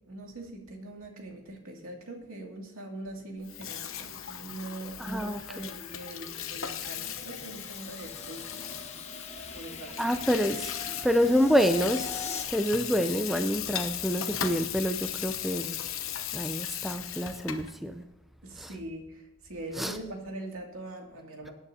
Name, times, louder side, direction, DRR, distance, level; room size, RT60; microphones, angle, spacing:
voice 1, 0.1-8.8 9.5-10.2 18.4-21.5, right 1 dB, 75° right, 1 dB, 2.5 m, -42 dB
Water tap faucet / Sink (filling or washing), 3.4-17.7, left 10 dB, 65° left, 0.9 m, -37 dB
sound 1, 4.5-12.4, left 4 dB, 30° left, 1.2 m, -43 dB
voice 2, 5.0-5.7 10.0-10.7 11.0-15.8 16.3-18.0 18.6-18.7 19.8-20.0, equal, ahead, 7 dB, 0.5 m, -27 dB
21.5 x 10.0 x 2.8 m, 0.97 s
head